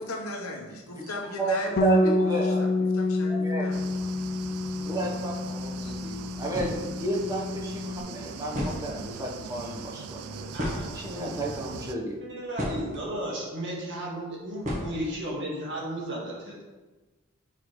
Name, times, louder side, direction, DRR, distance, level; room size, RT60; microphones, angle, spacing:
voice 1, 0.0-3.8 5.0-5.3 5.8-5.9, left 1 dB, 75° left, 0 dB, 1.1 m, -38 dB
voice 2, 1.4-2.7 3.3-3.7 4.8-10.2 10.9-12.2, right 1 dB, 15° right, -2 dB, 1.1 m, -32 dB
Bass guitar, 1.8-8.0, left 2 dB, 40° left, 0.3 m, -28 dB
sound 1, 3.7-11.9, right 5 dB, 80° right, 0.4 m, -41 dB
sound 2, 6.5-6.9 8.1-8.2 8.5-9.3 10.6-11.4 12.1-13.0 14.6-15.3, left 1 dB, 35° right, 1.4 m, -33 dB
voice 3, 10.3-10.9 12.2-16.6, right 1 dB, 60° right, -3 dB, 1.8 m, -34 dB
6.8 x 4.7 x 3.2 m, 1.2 s
head